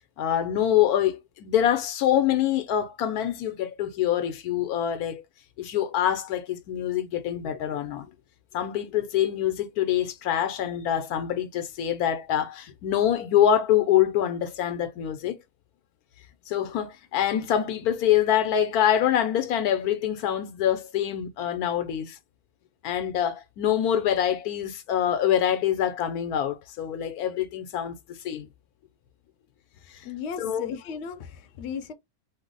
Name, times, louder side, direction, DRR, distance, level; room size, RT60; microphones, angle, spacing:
voice 1, 0.2-5.2 5.6-8.1 8.5-15.4 16.5-22.2 22.8-27.9 28.2-28.5 30.4-30.7, left 10 dB, 80° left, 1.1 m, -25 dB
voice 2, 30.0-31.9, left 7 dB, 60° left, 0.7 m, -35 dB
3.1 x 2.0 x 3.8 m
omnidirectional pair, 1.6 m